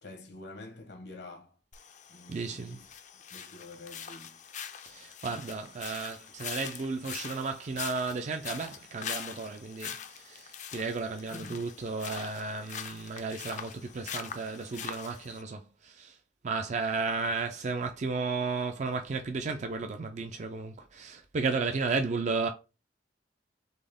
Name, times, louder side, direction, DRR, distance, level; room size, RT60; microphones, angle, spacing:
voice 1, 0.0-1.6 2.1-4.4 11.3-11.7, left 2 dB, 70° left, 1.0 m, -47 dB
sound 1, 1.7-15.4, left 8 dB, 45° left, 0.5 m, -43 dB
voice 2, 2.3-2.8 4.9-16.2 16.4-22.5, right 4 dB, 40° right, 0.4 m, -33 dB
4.1 x 3.3 x 3.5 m
head